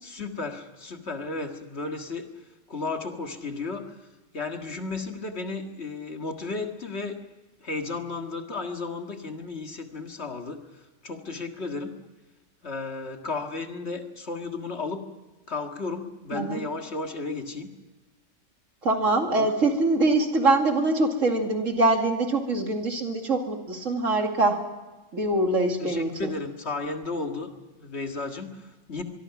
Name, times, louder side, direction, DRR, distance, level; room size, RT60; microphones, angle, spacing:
voice 1, 0.0-2.3 2.7-4.1 4.3-7.2 7.6-11.9 12.6-15.0 15.5-17.7 19.3-19.6 25.8-27.5 27.8-29.0, left 3 dB, 60° left, 4 dB, 2.1 m, -34 dB
voice 2, 18.8-24.6 25.1-26.3, right 2 dB, 85° right, 3 dB, 2.8 m, -24 dB
24.0 x 23.0 x 5.9 m, 1.2 s
omnidirectional pair, 1.3 m